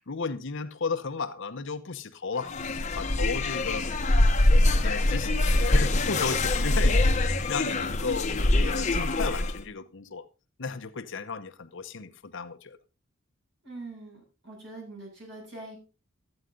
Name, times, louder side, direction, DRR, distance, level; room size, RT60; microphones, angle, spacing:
voice 1, 0.0-3.9 4.8-10.2 10.6-12.8, left 4 dB, 65° left, 0.9 m, -34 dB
sound 1, 2.4-9.6, left 2 dB, 35° left, 0.9 m, -24 dB
voice 2, 13.6-15.8, right 2 dB, 60° right, 6.7 m, -43 dB
13.0 x 8.9 x 3.8 m
head